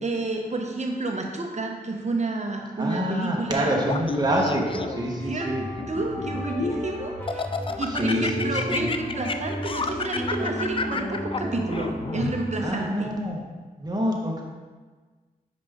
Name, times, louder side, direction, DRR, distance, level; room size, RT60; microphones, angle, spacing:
voice 1, 0.0-3.8 5.2-5.5 5.9-7.4 7.8-13.1, right 2 dB, 45° right, 2 dB, 0.9 m, -30 dB
voice 2, 2.8-5.6 7.7-8.9 12.6-13.4 13.8-14.4, equal, 25° right, -1 dB, 1.2 m, -27 dB
Laughter, 3.8-5.1 5.8-6.8 7.3-12.3, left 4 dB, 35° left, 0.4 m, -30 dB
sound 1, 4.0-12.7, right 1 dB, 10° left, 1.3 m, -34 dB
5.2 x 5.1 x 3.5 m, 1.4 s
cardioid pair, 45°, 16 cm